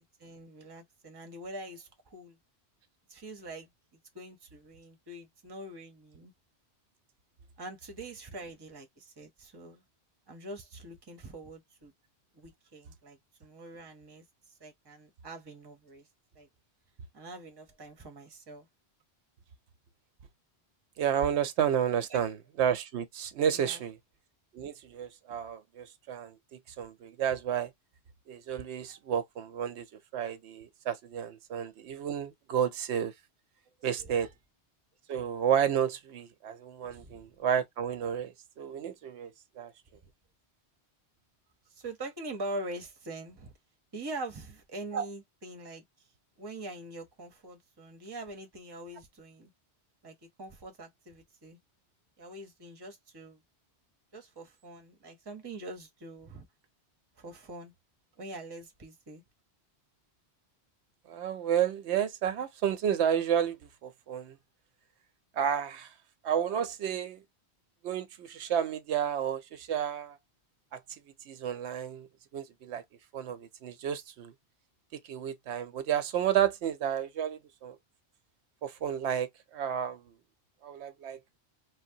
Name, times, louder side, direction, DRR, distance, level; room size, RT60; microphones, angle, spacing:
voice 1, 0.2-2.4 3.1-3.7 4.1-6.3 7.6-9.8 10.3-11.9 12.3-14.2 14.6-16.1 16.3-16.5 17.1-18.7 22.1-22.3 23.5-23.9 33.8-34.1 36.8-37.2 41.7-43.5 43.9-45.8 46.4-49.5 50.0-51.6 52.2-53.4 54.1-56.5 57.2-57.7 58.2-59.2, right 2 dB, 25° right, 0.7 m, -44 dB
voice 2, 21.0-24.0 24.5-27.7 28.3-29.8 30.1-33.1 33.8-34.3 35.1-39.7 44.9-45.1 61.1-64.3 65.4-65.9 66.2-67.2 67.8-70.2 70.7-70.8 71.3-72.1 72.3-72.8 73.1-74.3 74.9-77.8 78.6-80.0 80.6-81.2, right 9 dB, 85° right, 0.9 m, -31 dB
3.4 x 2.0 x 2.6 m
omnidirectional pair, 1.1 m